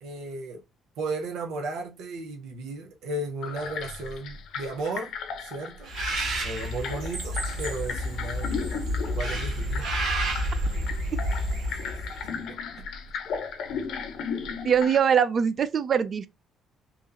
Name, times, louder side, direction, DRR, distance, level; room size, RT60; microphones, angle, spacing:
voice 1, 0.0-0.6 1.0-5.9 6.4-8.7 9.1-9.9 11.7-12.9, right 2 dB, 80° right, 0.6 m, -35 dB
sound 1, 3.4-15.0, left 6 dB, 70° left, 0.5 m, -36 dB
Bird, 5.9-12.3, right 1 dB, 65° right, 1.3 m, -30 dB
voice 2, 14.6-16.3, right 7 dB, 40° right, 0.3 m, -22 dB
2.9 x 2.5 x 2.2 m
cardioid pair, 140°, 0 cm